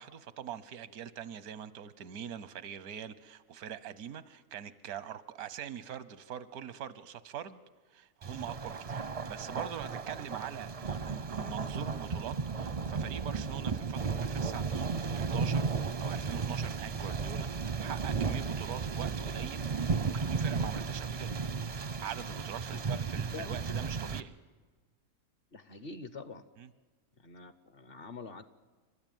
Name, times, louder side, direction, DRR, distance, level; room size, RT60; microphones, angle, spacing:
voice 1, 0.0-7.6 7.9-21.4 22.0-24.4 26.6-26.7, right 9 dB, 90° right, 16 dB, 1.3 m, -43 dB
Thunder, 8.2-24.2, right 5 dB, 40° right, 0.5 m, -34 dB
voice 2, 25.5-26.4 27.2-28.4, left 4 dB, 50° left, 13 dB, 0.9 m, -45 dB
30.0 x 12.5 x 9.1 m, 1.4 s
omnidirectional pair, 1.5 m